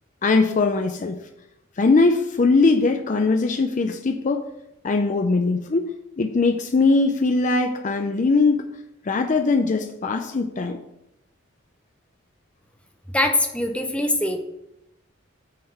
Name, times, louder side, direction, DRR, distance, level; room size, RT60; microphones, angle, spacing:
voice 1, 0.2-1.2 1.8-4.5 4.8-8.6 9.0-10.8, left 3 dB, 40° left, 6 dB, 0.4 m, -21 dB
voice 2, 13.1-14.4, left 1 dB, 5° left, 4 dB, 0.7 m, -22 dB
8.5 x 3.7 x 5.8 m, 0.87 s
head